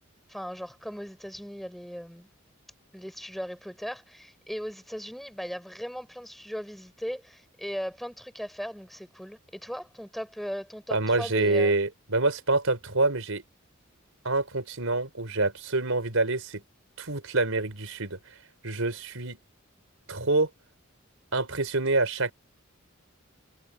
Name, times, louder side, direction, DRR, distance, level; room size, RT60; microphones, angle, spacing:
voice 1, 0.3-2.3 2.9-11.7, equal, ahead, 5.9 m, -38 dB
voice 2, 10.9-13.4 14.2-16.6 17.0-18.2 18.6-19.4 20.1-20.5 21.3-22.3, right 2 dB, 80° right, 4.2 m, -26 dB
head